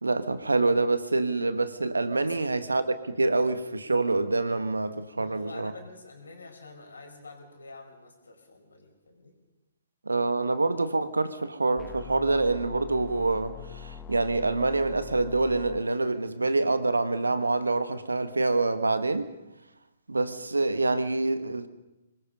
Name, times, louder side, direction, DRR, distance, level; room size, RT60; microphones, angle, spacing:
voice 1, 0.0-5.7 10.0-19.3 20.1-21.7, right 3 dB, 85° right, 1.5 m, -26 dB
voice 2, 5.1-9.3, left 3 dB, 75° left, 4.7 m, -47 dB
sound 1, 11.8-15.8, left 7 dB, 20° left, 1.0 m, -43 dB
23.0 x 20.5 x 5.4 m
figure-of-eight pair, 125°, 0 cm